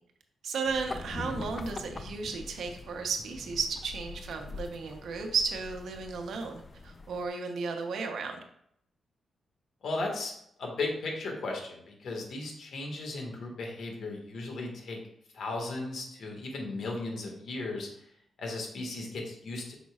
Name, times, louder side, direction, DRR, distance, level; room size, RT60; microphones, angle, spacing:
voice 1, 0.4-8.4, right 5 dB, 80° right, 4 dB, 1.0 m, -34 dB
sound 1, 0.6-7.3, left 3 dB, 30° left, 0.6 m, -43 dB
voice 2, 9.8-10.3 10.6-15.0 15.3-17.9 18.4-19.7, left 2 dB, 70° left, 1 dB, 1.8 m, -36 dB
8.3 x 6.0 x 2.5 m, 0.72 s
cardioid pair, 115°, 0 cm